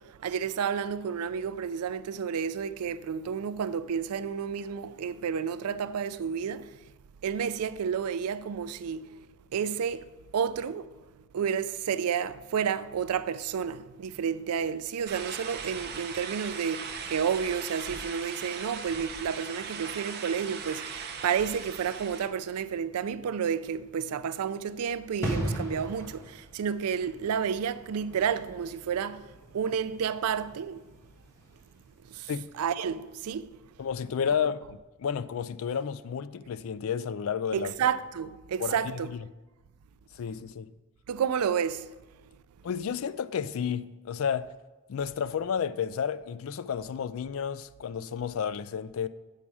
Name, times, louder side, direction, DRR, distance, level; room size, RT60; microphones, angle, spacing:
voice 1, 0.0-6.8 7.2-9.1 9.5-10.9 11.3-29.3 29.5-30.8 32.1-32.3 32.6-33.5 37.5-39.1 41.1-41.9, right 7 dB, 90° right, 0.4 m, -31 dB
sound 1, 15.1-22.3, right 6 dB, 45° right, 0.6 m, -39 dB
sound 2, 25.2-31.7 32.0-32.2, equal, 15° left, 1.4 m, -38 dB
voice 2, 33.8-37.7 38.6-39.2 40.1-40.7 42.6-44.5 44.9-49.1, left 7 dB, 65° left, 0.3 m, -31 dB
7.2 x 5.6 x 4.7 m
head